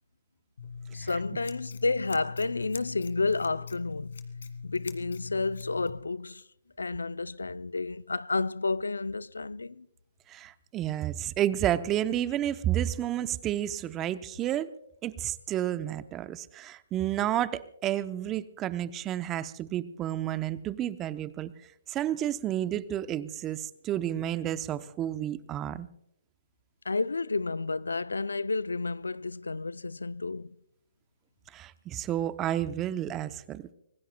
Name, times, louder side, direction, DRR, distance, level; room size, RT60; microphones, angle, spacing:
Scissors, 0.6-6.0, left 5 dB, 70° left, 2.0 m, -41 dB
voice 1, 0.9-4.1 4.6-6.4 6.8-9.9 26.8-30.6, left 3 dB, 90° left, 0.4 m, -31 dB
voice 2, 10.3-14.7 15.0-21.5 21.9-25.9 31.5-33.6, right 12 dB, 20° right, 0.7 m, -31 dB
25.0 x 18.5 x 2.2 m
hypercardioid pair, 135°, 0 cm